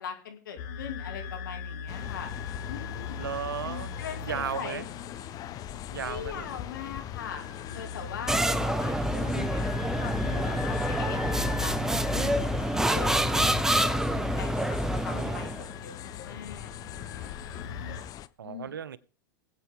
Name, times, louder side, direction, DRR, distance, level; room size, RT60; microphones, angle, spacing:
voice 1, 0.0-2.3 2.6-3.2 3.6-4.9 6.0-7.5 7.7-9.7 10.0-14.8 15.0-17.3 18.4-18.8, left 8 dB, 70° left, 4 dB, 2.6 m, -41 dB
sound 1, 0.6-18.0, left 5 dB, 55° left, 1.9 m, -41 dB
sound 2, 1.9-18.3, left 12 dB, 35° left, 0.6 m, -41 dB
voice 2, 3.2-3.9 4.2-4.9 5.9-6.5 15.1-15.4 18.4-19.0, right 8 dB, 80° right, 19 dB, 0.6 m, -35 dB
sound 3, 8.3-15.7, right 1 dB, 5° right, 0.7 m, -27 dB
20.5 x 8.3 x 3.6 m, 0.40 s
hypercardioid pair, 95°, 11 cm